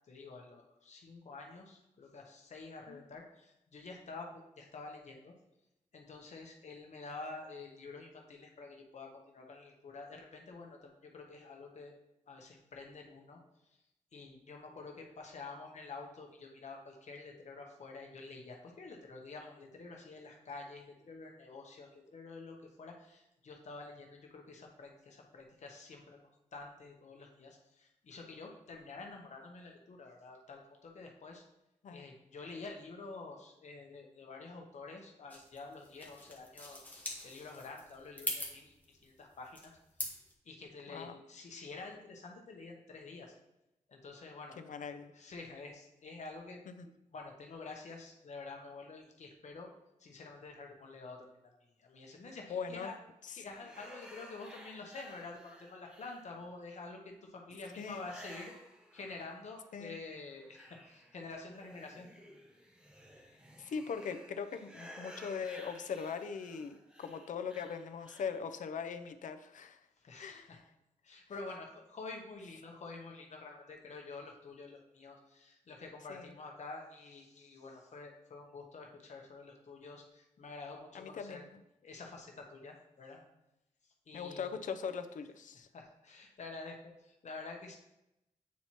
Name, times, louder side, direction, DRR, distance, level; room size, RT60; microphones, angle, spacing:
voice 1, 0.1-5.3 5.9-11.9 12.3-13.4 14.1-26.2 26.5-31.5 31.9-36.8 37.2-43.3 43.9-44.6 45.1-49.7 50.0-51.5 51.8-53.0 53.3-58.5 58.9-62.1 70.0-70.6 71.0-81.4 81.8-83.2 84.1-84.6 85.7-87.8, left 3 dB, 65° left, 1 dB, 0.9 m, -48 dB
sound 1, 35.3-40.3, left 1 dB, 15° left, 1.1 m, -43 dB
voice 2, 44.6-45.1 46.7-46.9 52.5-52.9 53.2-53.4 57.8-58.0 59.7-60.0 63.6-69.8 70.2-70.6 76.1-76.3 80.9-81.6 84.1-85.7, left 6 dB, 90° left, 8 dB, 0.5 m, -41 dB
sound 2, 53.4-56.6 57.7-59.7 60.0-68.5, equal, 5° right, 0.8 m, -55 dB
8.3 x 4.4 x 2.9 m, 0.87 s
wide cardioid pair, 145°, 13 cm